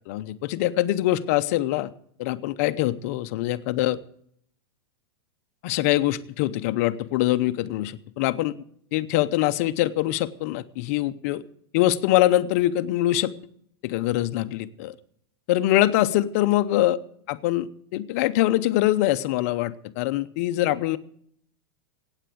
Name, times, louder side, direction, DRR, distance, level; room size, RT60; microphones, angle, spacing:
voice 1, 0.1-1.9 2.2-4.0 5.6-8.5 8.9-11.4 11.7-13.3 13.8-14.9 15.5-17.0 17.3-21.0, left 15 dB, 35° left, 12 dB, 0.7 m, -23 dB
15.5 x 9.0 x 7.7 m, 0.66 s
supercardioid pair, 175°, 13 cm